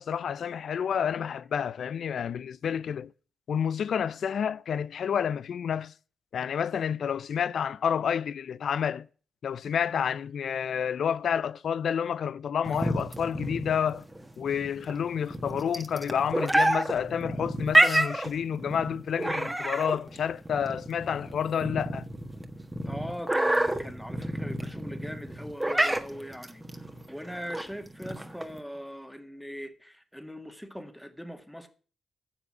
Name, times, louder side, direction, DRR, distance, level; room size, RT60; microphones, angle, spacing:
voice 1, 0.0-3.1 3.5-5.9 6.3-9.1 9.4-14.0 14.4-22.0, left 8 dB, 65° left, 0.4 m, -29 dB
sound 1, 12.7-28.6, right 1 dB, 10° right, 1.5 m, -29 dB
voice 2, 22.9-31.7, equal, 5° left, 1.9 m, -41 dB
10.0 x 7.1 x 6.1 m
supercardioid pair, 45°, 0 cm